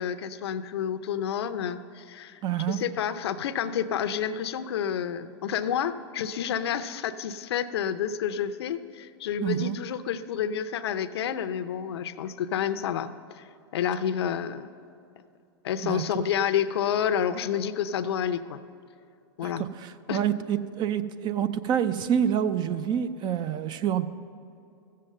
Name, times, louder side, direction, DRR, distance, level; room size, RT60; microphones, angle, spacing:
voice 1, 0.0-2.4 2.7-13.5 13.7-14.7 15.6-18.6 19.4-19.6 20.1-20.2, left 8 dB, 75° left, 11 dB, 0.6 m, -29 dB
voice 2, 2.4-2.8 9.4-9.8 15.8-16.0 19.4-24.0, right 9 dB, 35° right, 12 dB, 0.6 m, -27 dB
15.0 x 7.6 x 6.6 m, 2.6 s
hypercardioid pair, 120°, 14 cm